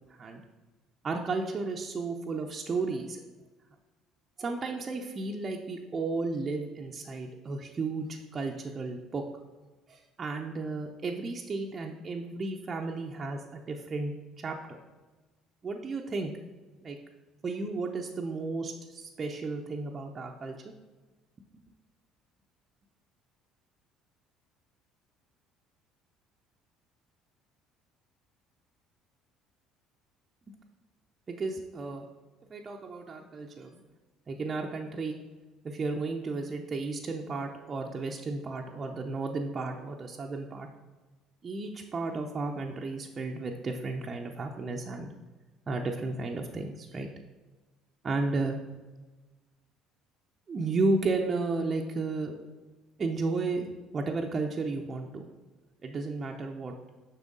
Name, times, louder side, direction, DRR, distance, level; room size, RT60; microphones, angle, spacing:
voice 1, 0.1-0.4 1.0-3.2 4.4-8.1 8.3-9.2 9.9-14.8 15.6-16.3 16.8-17.0 17.4-20.6 31.3-32.1 32.5-33.8 34.3-35.2 35.6-40.7 41.4-45.1 45.7-47.1 48.0-48.6 50.5-52.4 53.0-55.3 55.8-56.7, right 3 dB, 35° right, 1 dB, 0.7 m, -33 dB
7.0 x 5.6 x 3.8 m, 1.2 s
figure-of-eight pair, 55°, 0 cm